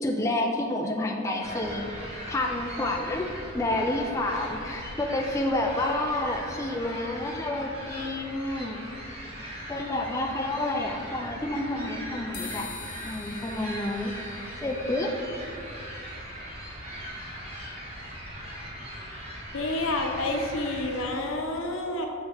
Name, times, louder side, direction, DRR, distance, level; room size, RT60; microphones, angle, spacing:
voice 1, 0.0-8.9 9.7-12.7 13.0-15.1, left 1 dB, 15° left, 1 dB, 0.3 m, -29 dB
sound 1, 1.4-21.1, equal, 30° right, 1.3 m, -40 dB
Triangle Ring Medium, 12.3-20.0, left 4 dB, 40° left, 0.9 m, -47 dB
voice 2, 19.5-22.1, left 2 dB, 70° left, 2 dB, 0.8 m, -29 dB
6.4 x 6.3 x 3.4 m, 2.5 s
head